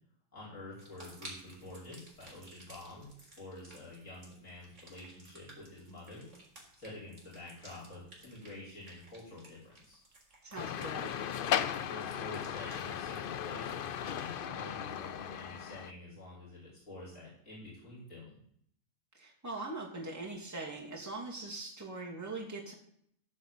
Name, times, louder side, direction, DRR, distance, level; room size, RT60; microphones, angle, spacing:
voice 1, 0.3-6.3 6.7-9.6 9.8-10.0 11.5-18.3, left 2 dB, 80° left, -9 dB, 5.9 m, -48 dB
sound 1, 0.8-14.2, right 1 dB, 65° right, 4.2 m, -56 dB
voice 2, 10.4-11.1 19.1-22.7, right 2 dB, 10° right, -2 dB, 2.3 m, -41 dB
sound 2, 10.6-15.9, left 9 dB, 55° left, 0.6 m, -36 dB
15.0 x 5.0 x 8.1 m, 0.67 s
omnidirectional pair, 1.4 m